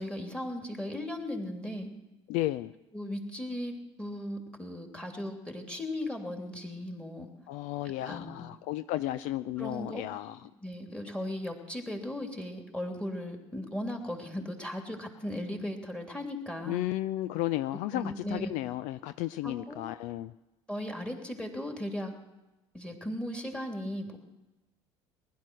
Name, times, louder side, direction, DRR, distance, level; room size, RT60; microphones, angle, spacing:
voice 1, 0.0-1.9 2.9-3.7 4.0-7.3 8.0-8.4 9.6-10.0 10.6-16.8 17.9-18.5 19.4-19.8 20.7-22.1 22.7-24.2, left 1 dB, 5° left, 3 dB, 3.2 m, -37 dB
voice 2, 2.3-2.7 7.5-10.4 16.7-20.3, left 15 dB, 55° left, 15 dB, 0.5 m, -33 dB
20.0 x 11.5 x 6.3 m, 1.0 s
hypercardioid pair, 70°, 15 cm